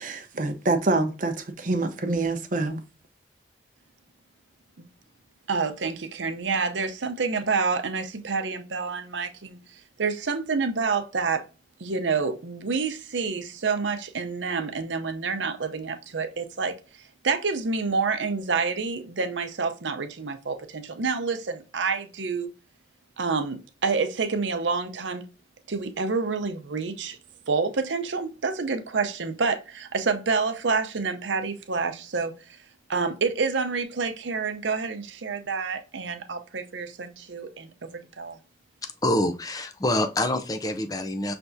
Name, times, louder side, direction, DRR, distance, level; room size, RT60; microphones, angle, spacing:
voice 1, 0.0-2.8, right 2 dB, 45° right, 0.7 m, -26 dB
voice 2, 5.5-9.6 10.0-11.4 11.8-16.7 17.2-22.5 23.2-25.2 25.7-27.2 27.5-32.3 32.9-38.4, right 4 dB, 90° right, 0.7 m, -28 dB
voice 3, 38.8-41.3, left 1 dB, 20° left, 0.5 m, -26 dB
5.9 x 3.4 x 2.6 m
head